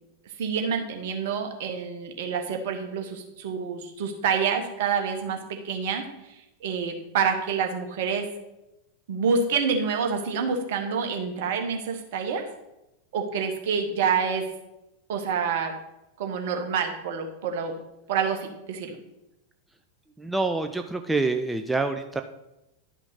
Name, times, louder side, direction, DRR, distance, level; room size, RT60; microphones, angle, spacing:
voice 1, 0.4-6.1 6.6-8.3 9.1-12.5 13.1-14.5 15.1-15.7 16.2-17.7 18.1-19.0, right 6 dB, 55° right, 5 dB, 1.3 m, -27 dB
voice 2, 20.2-22.2, right 3 dB, 5° right, 6 dB, 0.5 m, -26 dB
11.0 x 5.7 x 4.0 m, 0.92 s
figure-of-eight pair, 90°, 0 cm